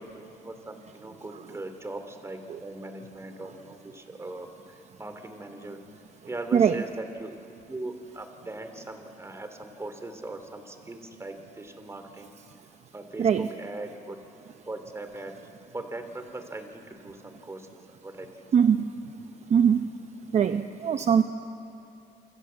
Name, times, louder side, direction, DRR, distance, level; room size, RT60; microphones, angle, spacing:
voice 1, 0.0-5.8 6.2-7.4 7.7-12.4 12.9-14.2 14.7-15.4 15.7-17.7 18.0-18.5, right 2 dB, 15° right, 7 dB, 3.1 m, -40 dB
voice 2, 18.5-18.8 19.5-19.8 20.3-21.2, right 7 dB, 40° right, 8 dB, 0.9 m, -21 dB
29.0 x 26.0 x 7.6 m, 3.0 s
cardioid pair, 110°, 17 cm